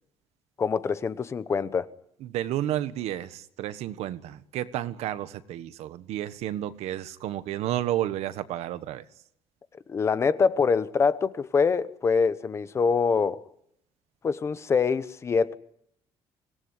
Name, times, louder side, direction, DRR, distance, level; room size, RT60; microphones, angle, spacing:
voice 1, 0.6-1.9 9.9-13.4 14.2-15.5, left 5 dB, 25° left, 1.0 m, -24 dB
voice 2, 2.2-9.0, right 12 dB, 85° right, 1.4 m, -31 dB
25.0 x 18.5 x 9.8 m
cardioid pair, 180°, 11 cm